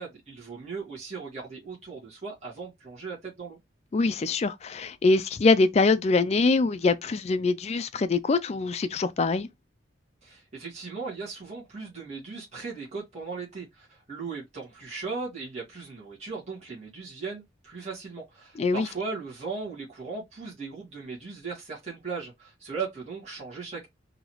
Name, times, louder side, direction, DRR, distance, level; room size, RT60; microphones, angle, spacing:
voice 1, 0.0-3.6 10.2-23.9, right 4 dB, 35° right, 1.8 m, -37 dB
voice 2, 3.9-9.5 18.6-18.9, left 3 dB, 35° left, 0.3 m, -24 dB
3.9 x 2.9 x 3.0 m
head